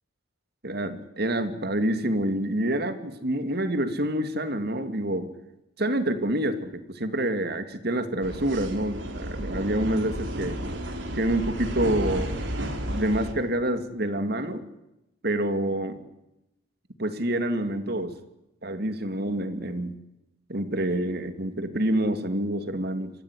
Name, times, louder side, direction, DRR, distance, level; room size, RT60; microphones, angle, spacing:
voice 1, 0.6-5.3 5.8-10.6 11.1-12.3 12.9-14.6 15.2-16.0 17.0-18.1 18.6-20.0 20.5-23.1, right 1 dB, 50° right, 10 dB, 2.6 m, -27 dB
sound 1, 8.2-13.3, right 1 dB, 65° right, 4.1 m, -32 dB
27.5 x 15.5 x 10.0 m, 0.91 s
head